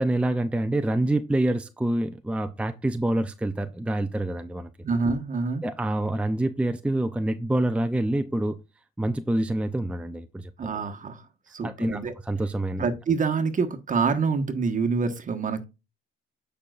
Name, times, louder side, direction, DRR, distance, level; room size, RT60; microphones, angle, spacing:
voice 1, 0.0-4.7 5.6-8.6 9.0-10.8 11.6-12.9, right 1 dB, 5° right, 0.6 m, -26 dB
voice 2, 4.8-5.6 10.6-11.2 11.5-12.1 12.8-15.6, right 4 dB, 40° right, 1.3 m, -26 dB
8.6 x 5.5 x 2.5 m
cardioid pair, 95°, 21 cm